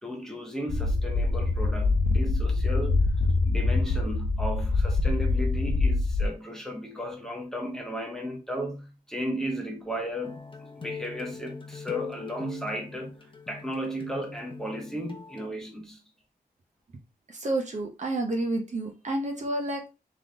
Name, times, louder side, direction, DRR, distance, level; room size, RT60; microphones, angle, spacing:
voice 1, 0.0-3.1 3.4-16.0, equal, 5° left, 1.1 m, -35 dB
sound 1, 0.7-6.3, left 3 dB, 60° left, 0.9 m, -24 dB
sound 2, 10.2-15.5, left 5 dB, 35° left, 1.0 m, -42 dB
voice 2, 17.3-19.9, right 2 dB, 50° right, 1.1 m, -30 dB
3.9 x 3.3 x 3.8 m
wide cardioid pair, 140°, 16 cm